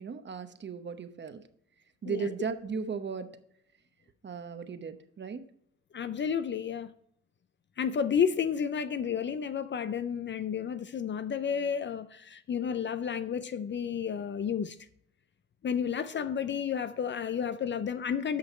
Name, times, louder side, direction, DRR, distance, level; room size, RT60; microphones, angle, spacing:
voice 1, 0.0-1.4 2.0-3.4 4.2-5.4, right 6 dB, 35° right, 1.0 m, -36 dB
voice 2, 5.9-6.9 7.8-14.8 15.6-18.4, left 7 dB, 40° left, 0.5 m, -31 dB
8.5 x 6.3 x 4.3 m
cardioid pair, 90°, 30 cm